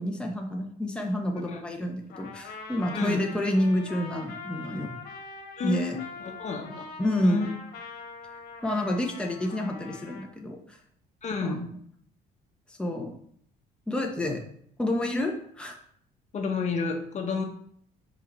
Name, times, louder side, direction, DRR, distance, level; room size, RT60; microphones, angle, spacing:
voice 1, 0.0-4.9 5.6-6.0 7.0-7.5 8.6-10.8 11.4-11.6 12.7-13.2 13.9-14.4 14.8-15.8, left 1 dB, 5° left, 1 dB, 1.2 m, -29 dB
Trumpet, 2.1-10.3, left 4 dB, 65° left, 1.7 m, -43 dB
voice 2, 2.9-3.2 5.6-6.1 6.4-6.9 7.2-7.5 11.2-11.7 16.3-17.4, left 4 dB, 45° left, 2 dB, 1.5 m, -30 dB
5.5 x 4.9 x 5.5 m, 0.65 s
cardioid pair, 110°, 17 cm